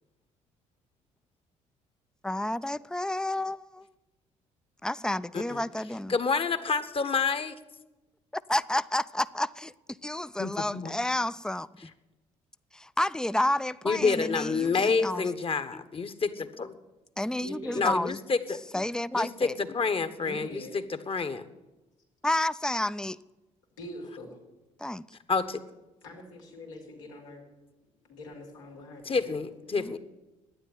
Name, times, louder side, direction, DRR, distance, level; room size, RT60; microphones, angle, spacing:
voice 1, 2.2-3.9 4.8-6.2 8.5-9.7 10.0-11.9 12.7-15.3 15.7-15.8 17.2-18.2 18.7-19.6 22.2-23.2 24.8-25.0 29.8-30.0, left 1 dB, 5° left, 0.5 m, -30 dB
voice 2, 6.1-7.5 10.4-10.9 13.8-16.7 17.8-18.8 19.1-21.5 25.3-25.6 29.0-30.0, left 4 dB, 35° left, 1.3 m, -28 dB
voice 3, 17.4-17.9 20.2-20.7 23.8-24.3 26.0-27.4 28.1-29.3, left 1 dB, 85° left, 2.8 m, -43 dB
11.5 x 9.4 x 9.8 m
hypercardioid pair, 50°, 16 cm